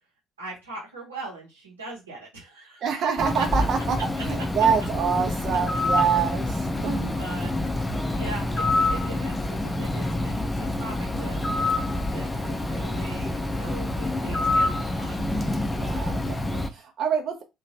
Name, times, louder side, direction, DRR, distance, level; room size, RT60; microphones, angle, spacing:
voice 1, 0.4-2.8 6.8-6.9 7.2-7.5 8.1-15.2, right 2 dB, 85° right, -5 dB, 0.9 m, -41 dB
voice 2, 2.8-7.5 15.7-17.4, right 6 dB, 50° right, 4 dB, 0.6 m, -26 dB
Bird, 3.2-16.7, left 2 dB, 15° left, 0.6 m, -27 dB
2.8 x 2.2 x 2.8 m, 0.23 s
figure-of-eight pair, 50°, 0 cm